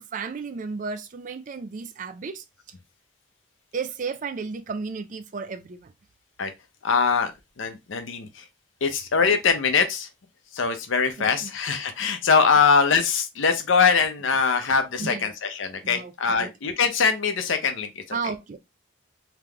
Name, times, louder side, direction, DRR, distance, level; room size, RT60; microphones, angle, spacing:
voice 1, 0.0-2.4 3.7-5.9 11.2-11.5 15.0-15.3 15.8-16.5 18.1-18.6, right 5 dB, 40° right, 0.4 m, -33 dB
voice 2, 6.8-7.3 7.6-8.4 8.8-10.1 10.5-18.2, left 5 dB, 70° left, 0.6 m, -22 dB
3.5 x 2.9 x 2.3 m
head